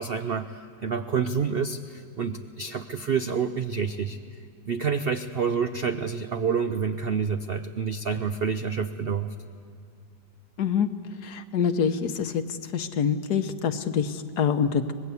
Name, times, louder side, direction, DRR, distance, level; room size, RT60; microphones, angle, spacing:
voice 1, 0.0-4.2 4.7-9.3, right 6 dB, 85° right, 8 dB, 0.5 m, -28 dB
voice 2, 11.2-12.4 12.7-14.9, left 7 dB, 65° left, 10 dB, 1.4 m, -25 dB
24.0 x 20.0 x 8.3 m, 2.4 s
omnidirectional pair, 2.0 m